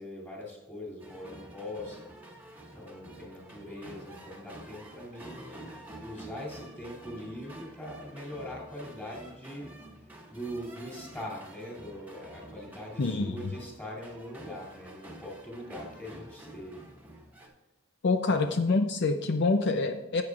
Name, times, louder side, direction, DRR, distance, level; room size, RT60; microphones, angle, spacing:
voice 1, 0.0-2.4 2.7-5.7 6.0-9.7 10.3-16.8 18.3-18.5, left 1 dB, 10° left, -4 dB, 2.8 m, -42 dB
gybsy Improvisation fragments, 1.0-17.5, right 1 dB, 10° right, 1.5 m, -49 dB
voice 2, 13.0-13.5 18.0-20.2, left 3 dB, 60° left, 7 dB, 0.5 m, -26 dB
12.5 x 8.6 x 2.4 m, 0.98 s
head